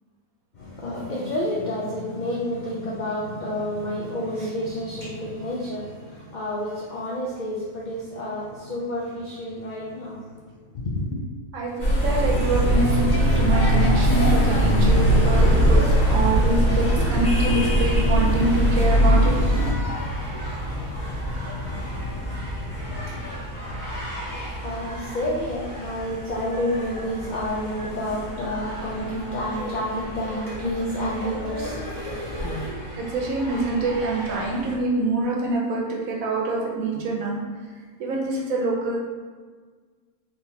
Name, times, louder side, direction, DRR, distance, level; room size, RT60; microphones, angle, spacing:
voice 1, 0.5-10.4 10.7-11.2 22.9-32.7, left 1 dB, 80° left, -5 dB, 0.4 m, -30 dB
voice 2, 11.5-19.3 32.7-37.4 38.0-39.0, right 2 dB, 80° right, -2 dB, 1.2 m, -25 dB
sound 1, 11.8-19.7, equal, 10° left, 0.9 m, -19 dB
sound 2, 15.2-34.8, equal, 40° left, 0.9 m, -33 dB
3.8 x 2.8 x 2.7 m, 1.5 s
omnidirectional pair, 1.4 m